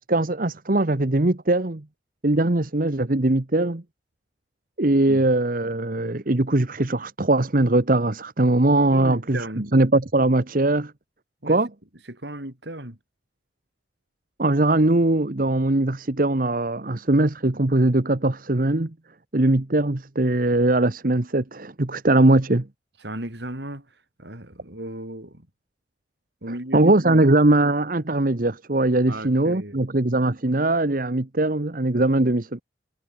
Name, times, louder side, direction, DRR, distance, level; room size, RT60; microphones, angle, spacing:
voice 1, 0.0-1.8 2.2-3.8 4.8-9.4 9.7-10.9 11.5-11.7 14.4-18.9 19.3-22.7 26.7-32.6, right 2 dB, 50° right, 1.2 m, -21 dB
voice 2, 8.9-9.8 11.4-11.6 12.0-13.0 23.0-25.5 26.4-27.2 29.1-29.8, right 1 dB, 65° right, 4.3 m, -36 dB
head